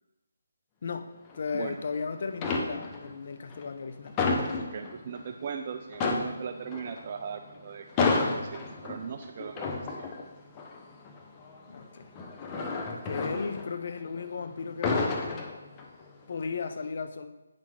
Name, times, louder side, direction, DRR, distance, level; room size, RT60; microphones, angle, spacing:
voice 1, 1.3-4.2 11.7-12.1 12.9-15.5 16.3-17.3, left 5 dB, 55° left, 9 dB, 0.6 m, -35 dB
sound 1, 1.3-2.0 2.3-3.2 3.5-5.3 5.6-5.7 5.9-14.3 14.6-16.1 16.4-16.7, left 4 dB, 20° left, 0.8 m, -31 dB
voice 2, 4.6-10.1, right 6 dB, 40° right, 6 dB, 0.4 m, -39 dB
8.9 x 5.8 x 3.2 m, 0.99 s
figure-of-eight pair, 150°, 0 cm